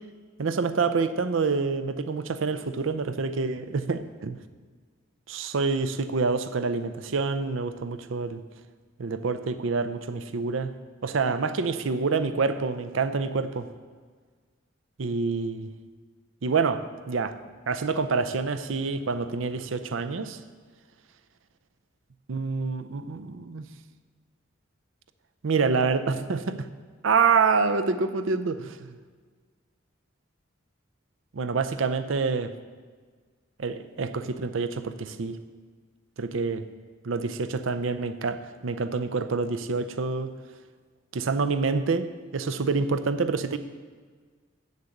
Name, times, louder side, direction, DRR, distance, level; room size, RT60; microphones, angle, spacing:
voice 1, 0.4-4.4 5.3-8.4 9.0-10.7 11.0-13.7 15.0-15.7 16.4-17.4 17.7-20.4 22.3-23.7 25.4-26.7 27.0-28.9 31.3-32.5 33.6-35.4 36.2-36.6 37.0-40.3 41.1-43.6, right 4 dB, 75° right, 11 dB, 0.6 m, -27 dB
8.0 x 6.7 x 7.1 m, 1.5 s
head